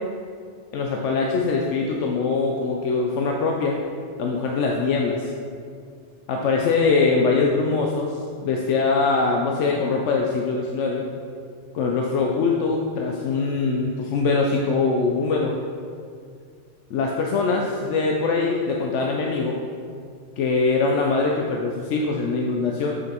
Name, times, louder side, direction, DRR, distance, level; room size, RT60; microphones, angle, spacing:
voice 1, 0.7-3.8 4.2-5.3 6.3-8.1 8.4-11.1 11.7-15.6 16.9-19.6 20.4-22.9, left 4 dB, 85° left, 0 dB, 0.9 m, -22 dB
7.2 x 6.6 x 2.9 m, 2.2 s
omnidirectional pair, 1.2 m